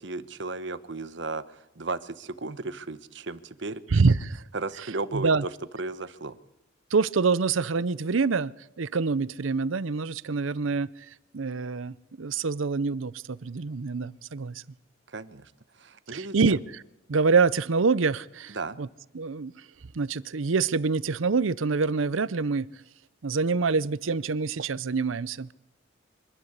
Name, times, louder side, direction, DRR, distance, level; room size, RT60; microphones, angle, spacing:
voice 1, 0.0-3.8 4.5-6.4 15.1-16.6 18.5-18.8, right 3 dB, 65° right, 14 dB, 1.1 m, -35 dB
voice 2, 3.9-4.4 5.1-5.4 6.9-10.9 11.3-14.6 16.1-16.6 17.1-18.9 19.1-19.5 19.9-22.7 23.2-25.5, right 4 dB, 85° right, 19 dB, 0.7 m, -26 dB
25.5 x 13.0 x 8.2 m, 0.94 s
head